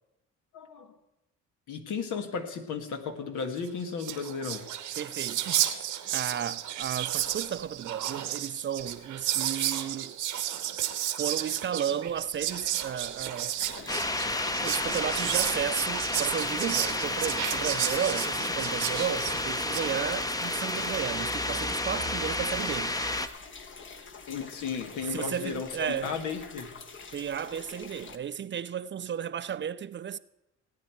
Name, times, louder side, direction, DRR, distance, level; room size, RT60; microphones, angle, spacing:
voice 1, 0.5-0.9 1.7-4.7 24.3-26.7, left 6 dB, 75° left, 1.6 m, -34 dB
Whispering, 3.7-3.8 3.9-19.9, right 11 dB, 75° right, 1.1 m, -32 dB
voice 2, 5.0-5.5 6.1-10.2 11.2-13.6 14.6-23.0 25.1-26.1 27.1-30.2, right 8 dB, 40° right, 0.5 m, -33 dB
sound 1, 13.6-28.2, left 4 dB, 40° left, 1.1 m, -46 dB
sound 2, 13.9-23.3, left 2 dB, 10° left, 0.7 m, -31 dB
17.0 x 9.4 x 4.5 m
cardioid pair, 90°, 30 cm